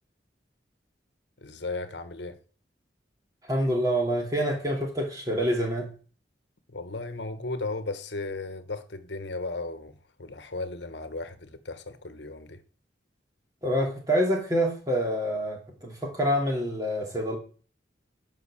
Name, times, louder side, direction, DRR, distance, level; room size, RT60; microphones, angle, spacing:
voice 1, 1.4-2.4 6.7-12.6, left 3 dB, 75° left, 1.3 m, -36 dB
voice 2, 3.4-5.9 13.6-17.4, equal, 20° right, 2.7 m, -27 dB
10.0 x 5.9 x 7.3 m
head